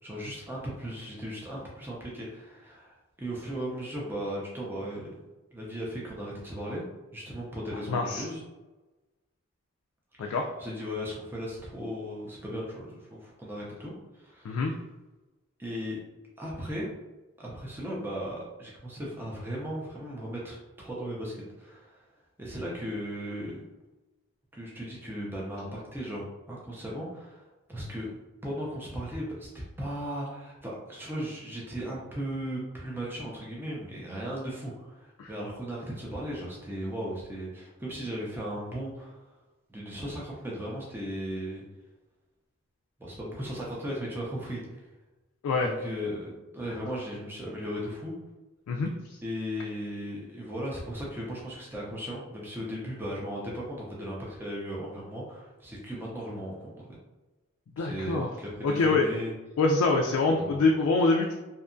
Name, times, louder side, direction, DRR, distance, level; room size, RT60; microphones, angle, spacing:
voice 1, 0.0-5.1 5.5-6.9 7.1-8.4 10.2-14.7 15.6-16.0 16.4-16.9 17.4-22.1 22.4-23.6 24.5-28.1 28.4-29.5 29.8-39.3 39.7-41.6 43.0-44.9 45.5-48.1 49.2-57.0 57.8-59.3 60.2-60.6, equal, 10° right, -4 dB, 0.4 m, -37 dB
voice 2, 7.9-8.2 10.2-10.5 14.4-14.7 35.2-35.3 45.4-45.7 48.7-49.2 57.8-58.3 58.6-59.1 59.6-61.3, left 3 dB, 85° left, 1 dB, 0.3 m, -25 dB
2.7 x 2.2 x 2.5 m, 1.1 s
head